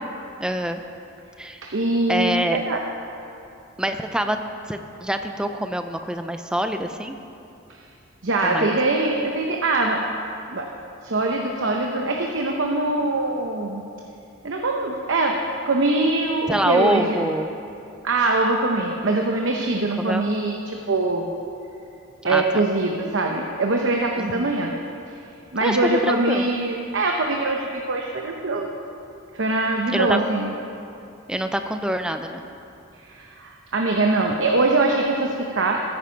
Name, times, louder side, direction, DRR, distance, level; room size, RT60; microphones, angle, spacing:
voice 1, 0.4-0.8 1.4-1.7 2.1-2.6 3.8-4.4 4.7-7.2 8.4-8.8 16.5-17.5 20.0-20.2 22.2-22.4 24.2-24.5 25.6-26.5 29.9-30.2 31.3-32.4, equal, 5° right, 7 dB, 0.5 m, -25 dB
voice 2, 1.6-2.8 8.2-10.0 10.5-10.7 11.0-13.8 14.4-15.4 15.7-17.3 18.0-21.3 22.2-24.7 25.5-28.7 29.3-30.5 33.0-35.8, right 2 dB, 65° right, 1 dB, 0.8 m, -23 dB
15.5 x 9.7 x 4.5 m, 2.7 s
head